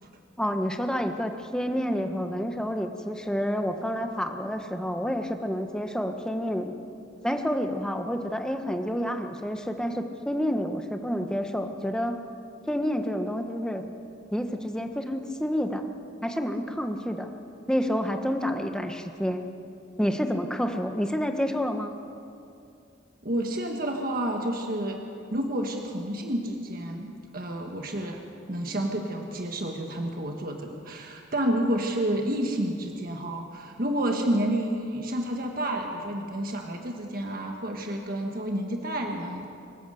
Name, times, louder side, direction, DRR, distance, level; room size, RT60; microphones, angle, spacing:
voice 1, 0.4-6.8 7.2-12.2 12.7-13.8 14.3-15.8 16.2-17.3 17.7-19.4 20.0-21.9, equal, 5° left, 5 dB, 1.2 m, -29 dB
voice 2, 23.2-25.0 25.3-28.2 28.5-39.5, right 1 dB, 50° right, 2 dB, 1.5 m, -30 dB
25.5 x 13.5 x 7.9 m, 2.5 s
head